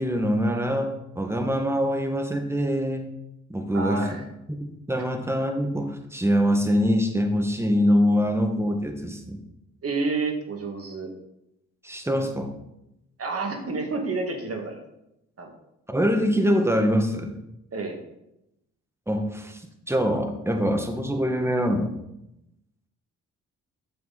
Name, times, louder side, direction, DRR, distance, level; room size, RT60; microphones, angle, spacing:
voice 1, 0.0-3.1 3.5-4.2 4.5-9.4 11.8-12.5 15.9-17.4 19.1-19.6 19.9-21.9, equal, 5° right, 4 dB, 1.8 m, -24 dB
voice 2, 3.7-4.2 9.8-11.1 13.2-14.8 15.4-15.5 17.7-18.0, right 3 dB, 45° right, 3 dB, 2.2 m, -29 dB
9.8 x 6.8 x 4.2 m, 0.85 s
hypercardioid pair, 45°, 33 cm